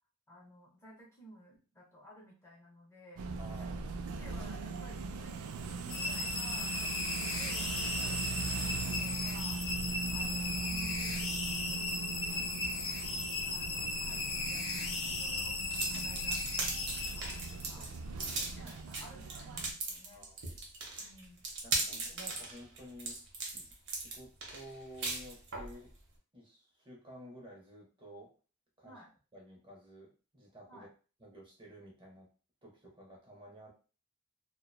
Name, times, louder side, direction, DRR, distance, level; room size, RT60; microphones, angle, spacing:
voice 1, 0.3-3.2 3.6-3.7 4.1-7.7 8.1-9.6 10.1-12.6 13.5-17.9 18.3-20.3 21.0-21.4 21.9-22.0 28.8-29.1 30.7-30.9, equal, 15° left, -5 dB, 0.6 m, -56 dB
sound 1, 3.2-19.7, right 4 dB, 90° right, 0.3 m, -40 dB
voice 2, 3.4-3.8 7.9-8.3 17.8-17.9 20.1-20.4 21.6-23.2 23.5-23.7 23.9-25.9 26.3-28.3 28.8-29.0 29.3-30.9 31.2-32.3 32.6-33.7, equal, 25° right, -2 dB, 0.7 m, -52 dB
sound 2, 5.9-17.8, left 3 dB, 60° left, 0.6 m, -36 dB
sound 3, 15.7-25.7, right 3 dB, 60° right, 0.7 m, -38 dB
2.8 x 2.1 x 2.2 m, 0.36 s
head